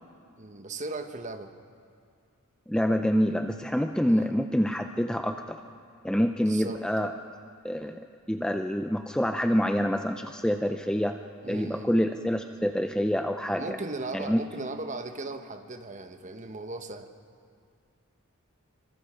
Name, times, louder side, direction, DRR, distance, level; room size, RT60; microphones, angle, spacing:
voice 1, 0.4-1.5 4.1-4.3 6.4-7.1 11.4-12.1 13.5-17.1, right 2 dB, 35° right, 7 dB, 1.2 m, -37 dB
voice 2, 2.7-5.6 6.0-7.1 7.6-11.2 11.5-13.8 14.1-14.4, equal, 5° left, 6 dB, 0.5 m, -27 dB
27.5 x 24.5 x 5.0 m, 2.3 s
head